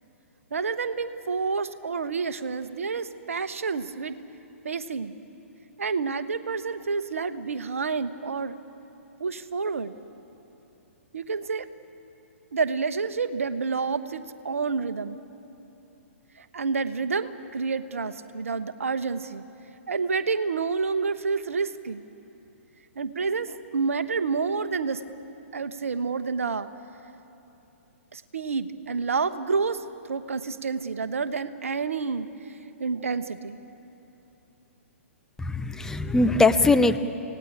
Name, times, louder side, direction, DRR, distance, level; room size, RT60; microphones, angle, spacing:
voice 1, 0.5-4.2 4.6-5.1 5.8-8.6 9.2-9.9 11.1-11.7 12.5-15.2 16.5-19.4 19.9-22.0 23.0-25.0 25.5-26.7 28.1-29.8 30.1-32.3 32.8-33.6, right 4 dB, 75° right, 11 dB, 1.1 m, -29 dB
voice 2, 35.4-37.0, left 3 dB, 5° left, 8 dB, 0.8 m, -21 dB
28.0 x 18.0 x 8.7 m, 2.9 s
figure-of-eight pair, 120°, 8 cm